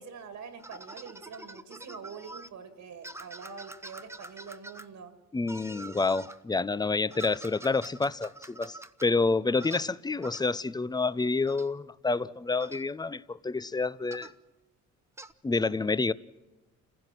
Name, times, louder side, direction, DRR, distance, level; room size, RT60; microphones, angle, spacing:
voice 1, 0.0-5.1, right 6 dB, 70° right, 2.2 m, -45 dB
sound 1, 0.6-2.5 3.0-4.9 5.5-6.4 7.1-9.1 9.6-9.9 10.2-10.5 11.5-11.7 12.6-12.8 14.1-14.4 15.2-15.3, right 2 dB, 10° right, 0.9 m, -46 dB
voice 2, 5.3-14.3 15.4-16.1, left 3 dB, 15° left, 0.6 m, -28 dB
28.5 x 15.5 x 6.1 m
cardioid pair, 90°, 30 cm